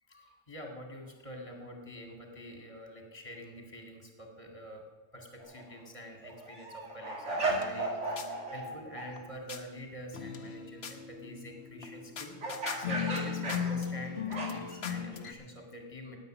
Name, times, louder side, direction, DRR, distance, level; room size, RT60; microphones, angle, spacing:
voice 1, 0.1-4.8 5.1-16.2, equal, 30° left, 2 dB, 2.2 m, -46 dB
sound 1, 5.4-5.6 6.1-8.7 9.0-9.1 12.4-14.8, right 2 dB, 80° right, 2.5 m, -35 dB
sound 2, 7.3-9.6 10.1-15.3, left 7 dB, 65° left, 1.2 m, -38 dB
9.7 x 8.9 x 9.1 m, 1.3 s
omnidirectional pair, 1.2 m